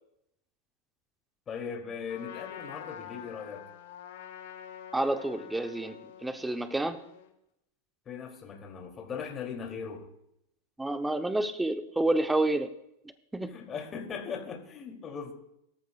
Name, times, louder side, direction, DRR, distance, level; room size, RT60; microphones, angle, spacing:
voice 1, 1.5-3.7 8.1-10.1 13.5-15.3, left 6 dB, 25° left, 1 dB, 2.7 m, -39 dB
Trumpet, 2.1-7.3, left 9 dB, 80° left, 2.6 m, -46 dB
voice 2, 4.9-7.1 10.8-12.7 13.3-13.6, right 2 dB, 5° right, 9 dB, 0.8 m, -29 dB
22.5 x 13.5 x 2.4 m, 0.80 s
supercardioid pair, 140°, 0 cm